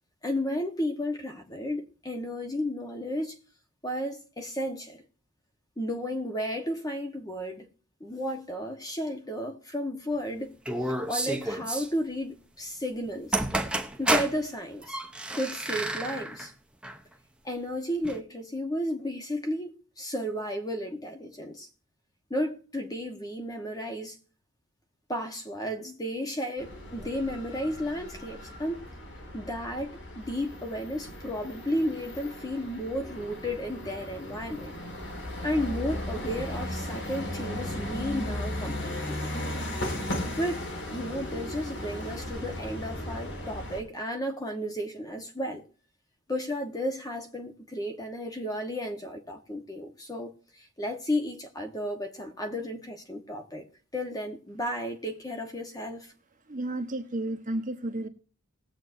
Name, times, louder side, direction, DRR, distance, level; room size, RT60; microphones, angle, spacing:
voice 1, 0.2-3.3 3.8-5.0 5.8-7.7 8.0-10.5 10.8-13.4 14.0-15.0 15.3-16.5 17.4-21.7 22.3-24.2 25.1-28.9 29.3-34.7 35.4-39.6 40.4-45.6 46.3-53.6 53.9-56.1, equal, 15° left, 1.3 m, -33 dB
sound 1, 10.7-11.9 13.1-13.2 13.3-14.4 14.8-16.5 16.8-17.0 18.0-18.2, right 1 dB, 5° right, 0.7 m, -30 dB
sound 2, 26.6-43.8, left 1 dB, 55° left, 2.4 m, -36 dB
voice 2, 56.5-58.1, right 1 dB, 35° right, 1.2 m, -32 dB
20.0 x 7.9 x 2.7 m
head